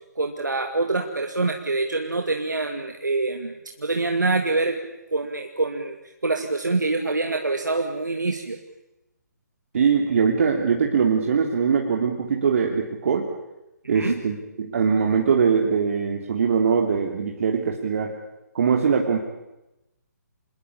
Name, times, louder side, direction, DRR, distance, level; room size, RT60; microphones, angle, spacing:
voice 1, 0.2-4.8 5.1-6.0 6.2-8.6 13.9-14.2, right 3 dB, 75° right, 4 dB, 2.6 m, -25 dB
voice 2, 9.7-13.3 13.9-18.2 18.5-19.2, right 6 dB, 50° right, 2 dB, 3.2 m, -22 dB
28.0 x 20.5 x 8.7 m, 0.94 s
figure-of-eight pair, 140°, 10 cm